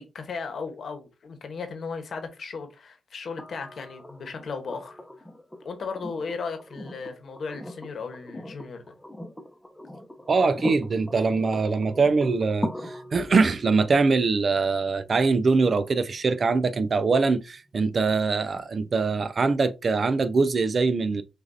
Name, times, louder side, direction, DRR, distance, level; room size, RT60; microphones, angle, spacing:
voice 1, 0.0-5.0 5.6-8.9, left 5 dB, 65° left, 1.1 m, -36 dB
sound 1, 3.4-17.3 19.1-19.2, left 1 dB, 10° left, 0.8 m, -41 dB
voice 2, 10.3-21.2, right 4 dB, 50° right, 0.5 m, -23 dB
6.2 x 2.5 x 2.7 m
cardioid pair, 70°, 0 cm